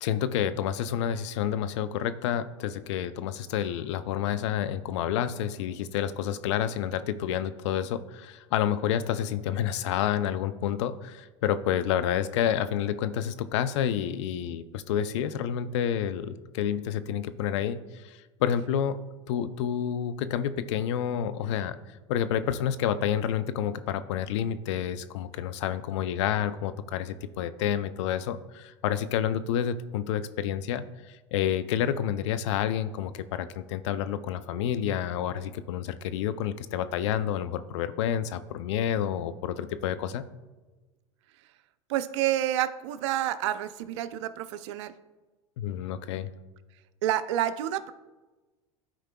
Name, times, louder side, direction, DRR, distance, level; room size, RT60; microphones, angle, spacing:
voice 1, 0.0-19.0 19.3-21.8 22.1-40.2 45.6-46.3, left 9 dB, 70° left, 13 dB, 0.5 m, -29 dB
voice 2, 41.9-44.9 47.0-47.9, right 12 dB, 70° right, 13 dB, 0.5 m, -29 dB
13.0 x 4.6 x 2.3 m, 1.2 s
hypercardioid pair, 95°, 15 cm